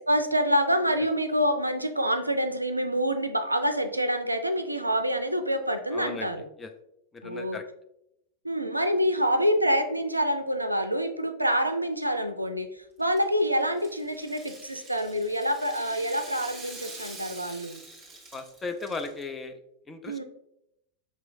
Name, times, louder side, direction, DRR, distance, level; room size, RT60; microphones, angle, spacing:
voice 1, 0.0-6.4 7.2-7.6 8.4-12.7 13.0-17.8 20.1-20.2, equal, 85° right, 8 dB, 0.3 m, -26 dB
voice 2, 5.9-6.3 6.6-6.7 7.1-7.6 18.3-19.6 19.9-20.2, left 3 dB, 15° left, 6 dB, 0.4 m, -36 dB
Rattle (instrument), 13.0-19.2, right 2 dB, 10° right, 1.3 m, -45 dB
5.4 x 3.0 x 2.5 m, 0.82 s
figure-of-eight pair, 90°, 0 cm